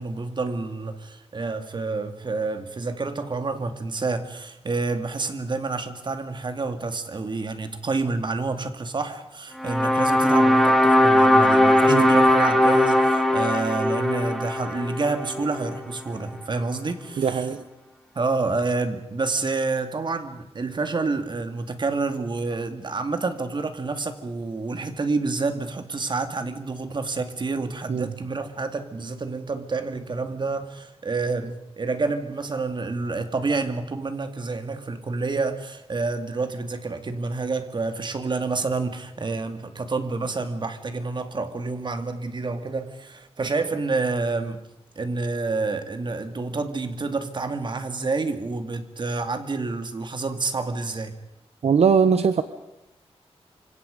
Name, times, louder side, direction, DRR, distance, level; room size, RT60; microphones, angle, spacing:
voice 1, 0.0-17.5 18.1-44.6 45.0-51.1, right 3 dB, 45° right, 8 dB, 2.3 m, -28 dB
sound 1, 9.6-15.8, left 1 dB, ahead, 2.4 m, -19 dB
voice 2, 17.2-17.7 27.9-28.1 51.6-52.4, right 6 dB, 75° right, 11 dB, 1.0 m, -20 dB
28.0 x 26.0 x 5.3 m, 0.89 s
wide cardioid pair, 125°, 11 cm